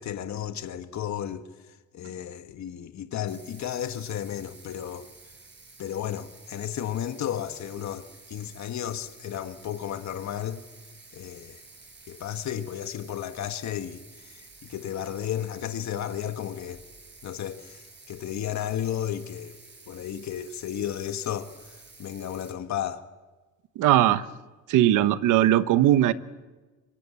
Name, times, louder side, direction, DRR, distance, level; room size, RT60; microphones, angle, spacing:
voice 1, 0.0-1.4 1.9-5.1 5.8-10.6 11.1-11.6 12.1-14.0 14.3-16.8 17.2-19.6 19.9-21.5 22.0-23.0, left 10 dB, 65° left, 1.6 m, -33 dB
Bathtub (filling or washing), 3.3-22.5, right 3 dB, 35° right, 6.1 m, -51 dB
voice 2, 23.8-24.2 24.7-26.1, right 12 dB, 90° right, 1.1 m, -19 dB
26.0 x 24.0 x 8.4 m
cardioid pair, 90°, 30 cm